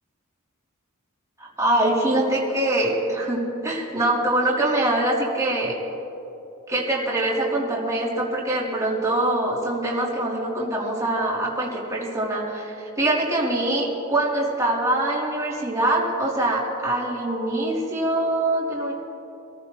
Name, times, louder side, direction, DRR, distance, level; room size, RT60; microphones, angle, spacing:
voice 1, 1.4-5.7 6.7-18.9, right 1 dB, 15° right, -5 dB, 3.1 m, -24 dB
26.0 x 14.5 x 3.1 m, 3.0 s
head